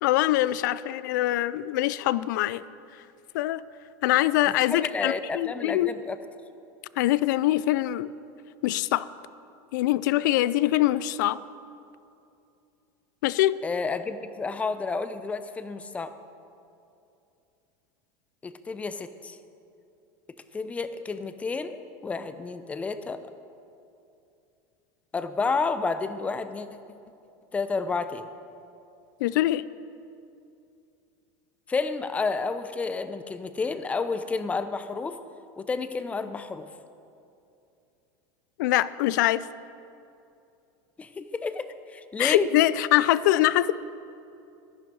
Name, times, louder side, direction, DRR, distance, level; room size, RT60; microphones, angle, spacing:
voice 1, 0.0-2.6 3.3-3.6 4.0-5.9 7.0-8.1 8.6-9.1 9.7-11.4 13.2-13.6 29.2-29.6 38.6-39.5 42.2-43.7, left 15 dB, 80° left, 17 dB, 0.4 m, -23 dB
voice 2, 4.7-6.2 13.6-16.2 18.4-19.4 20.5-23.2 25.1-26.7 27.5-28.3 31.7-35.2 35.6-36.7 41.0-42.5, left 4 dB, 15° left, 11 dB, 0.5 m, -30 dB
12.0 x 11.0 x 4.6 m, 2.6 s
supercardioid pair, 140°, 10 cm